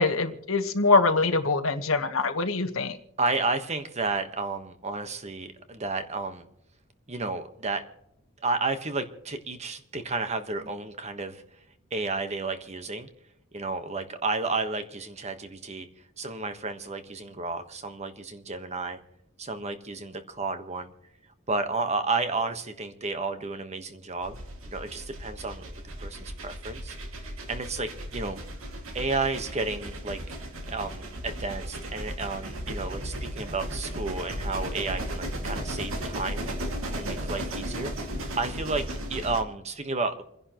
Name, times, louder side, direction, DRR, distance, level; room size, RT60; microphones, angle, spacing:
voice 1, 0.0-3.0, left 3 dB, 85° left, 9 dB, 1.3 m, -24 dB
voice 2, 3.2-6.5 7.1-7.8 8.4-11.4 11.9-13.1 13.5-15.9 16.2-19.0 19.4-20.9 21.5-24.4 24.7-26.9 27.5-28.4 28.9-30.2 30.7-36.5 36.9-37.9 38.4-40.2, right 3 dB, 35° right, 8 dB, 1.3 m, -32 dB
sound 1, 24.2-39.4, equal, 85° right, 2.2 m, -35 dB
28.5 x 10.5 x 3.0 m, 0.83 s
head